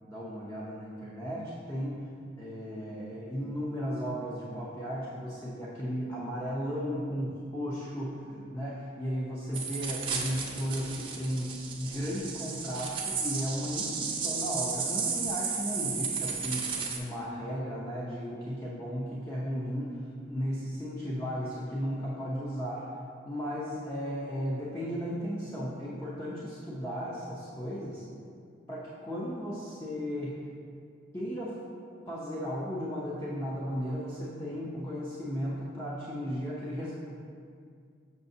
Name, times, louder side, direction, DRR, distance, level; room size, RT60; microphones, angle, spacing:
voice 1, 0.0-2.1 2.4-22.9 23.2-28.0 28.7-30.4 31.1-31.6 32.1-36.9, equal, 15° left, -7 dB, 0.7 m, -35 dB
sound 1, 9.5-17.0, right 5 dB, 25° right, 0.5 m, -34 dB
6.8 x 6.4 x 2.7 m, 2.3 s
head